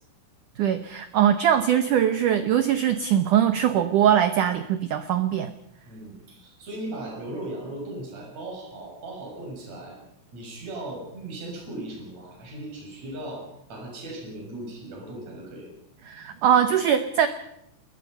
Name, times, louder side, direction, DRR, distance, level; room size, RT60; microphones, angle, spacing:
voice 1, 0.6-5.5 16.1-17.3, right 9 dB, 80° right, 10 dB, 1.8 m, -21 dB
voice 2, 5.9-10.0 10.3-15.7, right 1 dB, 35° right, -1 dB, 8.0 m, -37 dB
28.5 x 21.5 x 5.5 m, 0.75 s
omnidirectional pair, 5.0 m